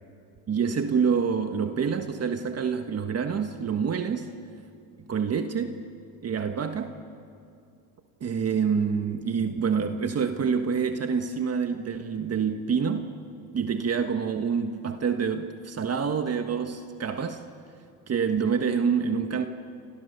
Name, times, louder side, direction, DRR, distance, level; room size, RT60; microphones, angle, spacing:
voice 1, 0.5-4.4 5.1-5.9 6.2-6.9 8.2-13.1 13.5-17.4 18.1-19.5, right 6 dB, 35° right, 6 dB, 1.4 m, -27 dB
30.0 x 27.5 x 6.8 m, 2.4 s
cardioid pair, 100°, 41 cm